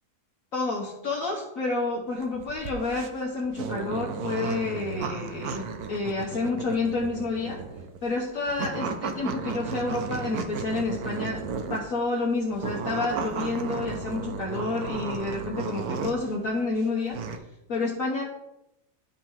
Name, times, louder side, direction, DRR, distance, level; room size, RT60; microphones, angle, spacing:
voice 1, 0.5-7.6 8.0-11.4 11.7-17.2 17.7-18.2, left 3 dB, 55° left, -2 dB, 1.4 m, -29 dB
sound 1, 2.1-12.0 12.5-16.3 16.8-17.4, right 5 dB, 70° right, 1.2 m, -34 dB
11.5 x 4.7 x 3.7 m, 0.88 s
omnidirectional pair, 1.8 m